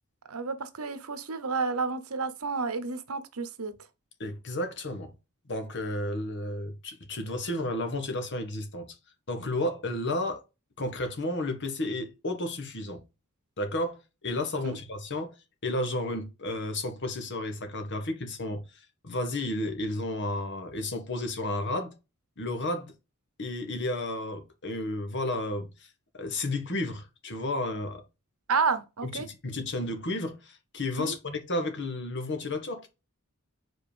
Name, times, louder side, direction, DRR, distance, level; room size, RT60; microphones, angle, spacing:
voice 1, 0.3-3.7 14.6-14.8 28.5-29.3 31.0-31.2, right 4 dB, 70° right, 1.0 m, -30 dB
voice 2, 4.2-5.1 5.5-8.9 9.3-10.4 10.8-13.0 13.6-15.3 15.6-18.6 19.0-21.9 22.4-22.9 23.4-25.9 26.1-28.0 29.0-32.9, left 1 dB, 55° left, 1.5 m, -32 dB
5.2 x 4.3 x 5.0 m
head